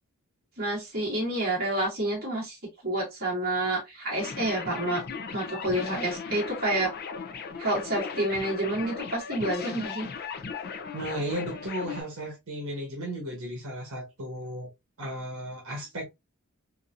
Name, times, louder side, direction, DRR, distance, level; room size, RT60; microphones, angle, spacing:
voice 1, 0.6-2.6 2.8-5.0 5.3-6.9 7.6-10.1, right 1 dB, 45° right, 2.0 m, -29 dB
sound 1, 4.2-12.0, left 5 dB, 45° left, 0.6 m, -37 dB
voice 2, 10.9-14.7 15.0-16.0, equal, 70° right, 1.3 m, -35 dB
3.8 x 2.8 x 2.5 m
head